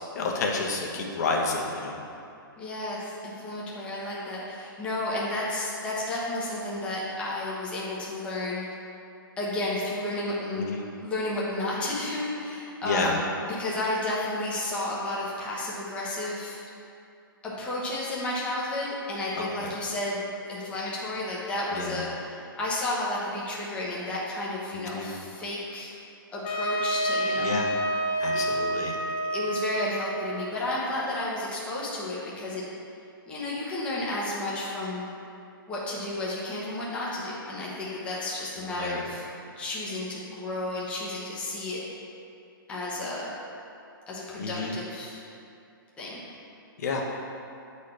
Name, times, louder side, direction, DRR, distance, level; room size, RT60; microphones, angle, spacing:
voice 1, 0.1-2.0 10.6-10.8 12.8-13.2 19.4-19.7 21.7-22.0 24.7-25.2 27.4-27.7 28.2-29.0 38.6-39.1 44.4-44.7 46.8-47.0, left 3 dB, 45° left, 0 dB, 1.0 m, -30 dB
voice 2, 2.6-8.7 9.4-10.6 11.0-16.6 17.4-20.2 20.5-25.9 26.3-27.5 28.3-28.5 29.3-32.6 33.3-35.1 35.7-39.2 39.6-41.8 42.7-43.4 44.1-45.2 46.0-46.2, left 1 dB, 10° left, -6 dB, 0.9 m, -32 dB
Trumpet, 26.4-31.3, right 1 dB, 30° left, 0.6 m, -29 dB
9.9 x 4.2 x 3.3 m, 2.6 s
hypercardioid pair, 165°, 12 cm